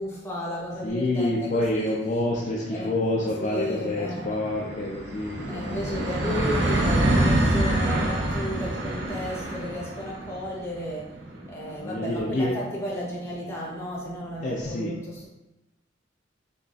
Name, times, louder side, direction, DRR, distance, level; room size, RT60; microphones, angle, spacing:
voice 1, 0.0-1.9 2.7-2.9 3.4-4.4 5.5-11.2 11.5-15.3, equal, 15° left, -5 dB, 0.8 m, -34 dB
voice 2, 0.8-6.1 6.3-6.6 11.6-12.5 14.4-14.9, left 1 dB, 40° left, -4 dB, 0.4 m, -28 dB
sound 1, 2.4-13.4, right 1 dB, 70° right, 0.6 m, -28 dB
3.9 x 2.9 x 2.4 m, 1.0 s
head